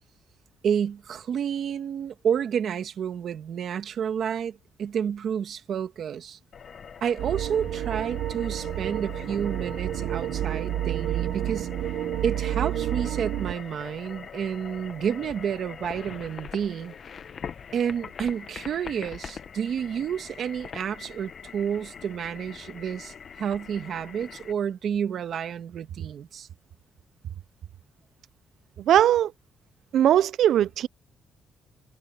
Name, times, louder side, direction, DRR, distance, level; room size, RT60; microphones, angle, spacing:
voice 1, 0.6-6.4 7.0-11.7 12.2-16.9 17.7-26.5 27.2-27.3, right 8 dB, 50° right, 1.5 m, -30 dB
sound 1, 6.5-24.5, left 7 dB, 40° left, 1.0 m, -43 dB
sound 2, 7.2-13.5, right 12 dB, 85° right, 0.8 m, -30 dB
voice 2, 28.8-29.3 29.9-30.9, right 11 dB, 65° right, 0.4 m, -20 dB
cardioid pair, 175°, 0 cm